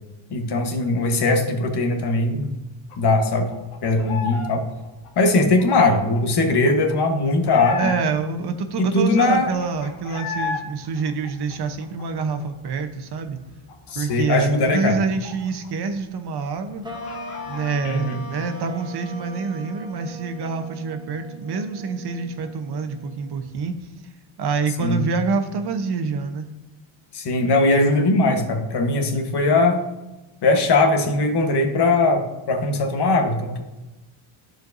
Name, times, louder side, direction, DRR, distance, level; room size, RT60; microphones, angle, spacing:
voice 1, 0.3-2.5 3.0-3.5 3.8-4.6 5.2-7.9 8.8-9.5 13.9-15.0 17.8-18.2 24.8-25.0 27.1-29.8 30.4-33.6, left 2 dB, 50° left, 5 dB, 1.2 m, -20 dB
sound 1, 2.9-4.5 4.8-8.3 8.7-8.8 9.0-10.6 11.0-12.7 13.0-13.1 13.4-15.9 16.1-16.2 16.6-17.7, left 5 dB, 90° left, 1.3 m, -35 dB
voice 2, 7.8-13.4 13.9-16.8 17.5-23.7 24.4-26.5, right 4 dB, 50° right, 8 dB, 0.9 m, -26 dB
sound 2, 16.8-23.5, right 1 dB, 10° right, 0.9 m, -39 dB
13.5 x 4.6 x 2.6 m, 1.1 s
cardioid pair, 130°, 50 cm